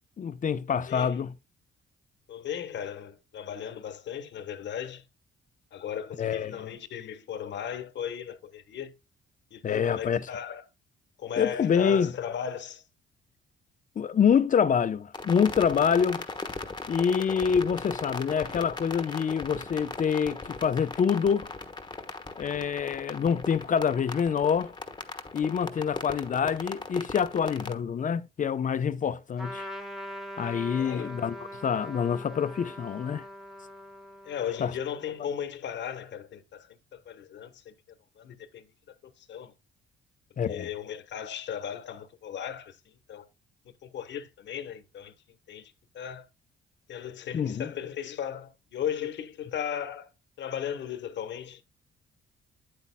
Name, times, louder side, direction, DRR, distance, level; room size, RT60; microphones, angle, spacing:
voice 1, 0.2-1.3 6.2-6.7 9.6-10.2 11.4-12.1 14.0-16.3 16.9-21.5 22.4-24.7 25.3-29.7 30.4-33.3 34.6-34.7 40.4-40.7 47.3-47.7, left 7 dB, 40° left, 0.7 m, -26 dB
voice 2, 0.9-1.2 2.3-5.0 5.7-8.9 9.5-10.6 11.2-12.8 30.7-31.1 34.2-37.7 38.2-39.5 40.5-43.3 43.8-45.1 45.5-46.2 46.9-50.1 50.4-51.6, left 9 dB, 65° left, 1.1 m, -36 dB
sound 1, 15.1-27.7, left 3 dB, 20° left, 1.1 m, -38 dB
Trumpet, 29.4-35.2, equal, ahead, 1.2 m, -42 dB
8.7 x 8.3 x 2.2 m
cardioid pair, 90°, 20 cm